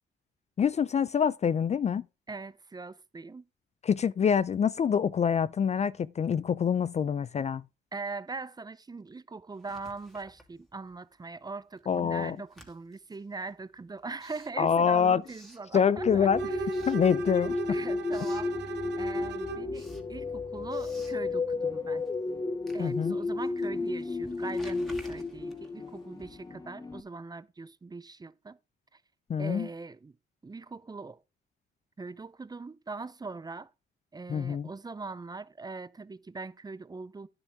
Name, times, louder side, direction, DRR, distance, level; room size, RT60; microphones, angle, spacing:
voice 1, 0.6-2.0 3.8-7.6 11.9-12.4 14.6-15.2 15.7-16.4 16.9-17.6 22.8-23.2 29.3-29.7 34.3-34.7, left 7 dB, 35° left, 0.4 m, -26 dB
voice 2, 2.3-3.5 7.9-16.7 17.7-22.0 22.7-28.6 28.9-29.0 29.4-30.2 30.4-31.2 32.0-33.7 34.1-37.3, right 3 dB, 20° right, 0.6 m, -41 dB
Writing, 9.5-11.1 11.4-16.2 16.6-17.6 17.9-18.5 19.0-26.6, equal, ahead, 2.5 m, -55 dB
sound 1, 16.0-27.0, left 3 dB, 20° left, 1.0 m, -33 dB
Bowed string instrument, 16.4-19.8, right 10 dB, 60° right, 1.3 m, -39 dB
9.9 x 7.9 x 3.5 m
cardioid pair, 90°, 20 cm